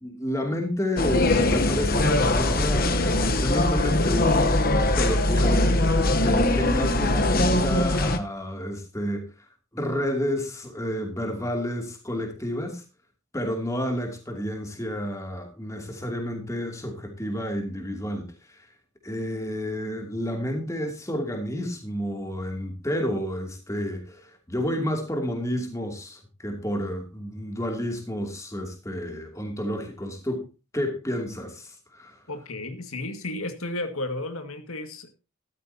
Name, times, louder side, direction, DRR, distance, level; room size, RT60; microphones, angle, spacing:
voice 1, 0.0-3.0 3.4-4.6 4.9-5.7 6.2-9.3 9.7-12.8 13.3-18.7 19.0-30.5 30.7-32.2, equal, 15° left, 2.6 m, -30 dB
sound 1, 1.0-8.2, left 1 dB, 45° left, 1.1 m, -21 dB
voice 2, 32.3-35.1, left 2 dB, 90° left, 2.1 m, -33 dB
14.0 x 12.5 x 2.8 m
head